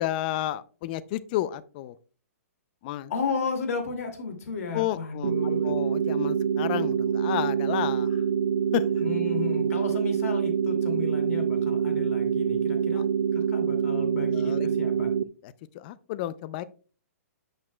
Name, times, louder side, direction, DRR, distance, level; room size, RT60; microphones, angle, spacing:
voice 1, 0.0-2.0 2.8-3.1 4.7-8.2 8.7-9.0 12.9-13.1 14.3-14.7 15.4-16.6, left 14 dB, 35° left, 16 dB, 0.4 m, -32 dB
voice 2, 3.1-5.7 9.0-13.0 13.3-15.1, left 4 dB, 70° left, 4 dB, 2.3 m, -33 dB
sound 1, 5.2-15.2, right 8 dB, 90° right, 0.5 m, -26 dB
10.5 x 6.5 x 2.2 m, 0.39 s
hypercardioid pair, 150°, 8 cm